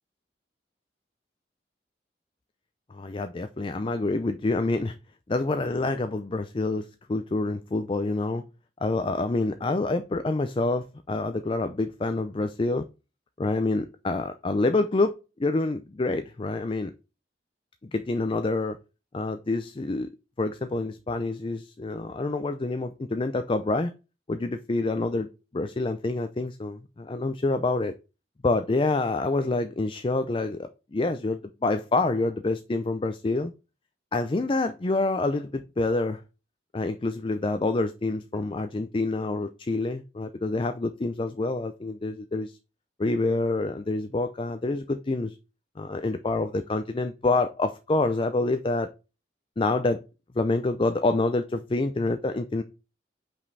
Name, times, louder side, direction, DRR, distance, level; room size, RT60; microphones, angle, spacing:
voice 1, 2.9-5.0 5.3-8.4 8.8-12.9 13.4-15.1 15.4-16.9 17.9-18.8 19.1-20.1 20.4-23.9 24.3-25.3 25.5-27.9 28.4-33.5 34.1-36.2 36.7-42.6 43.0-45.4 45.8-48.9 49.6-50.0 50.3-52.6, left 2 dB, 30° left, 0.4 m, -27 dB
5.7 x 5.2 x 4.0 m
head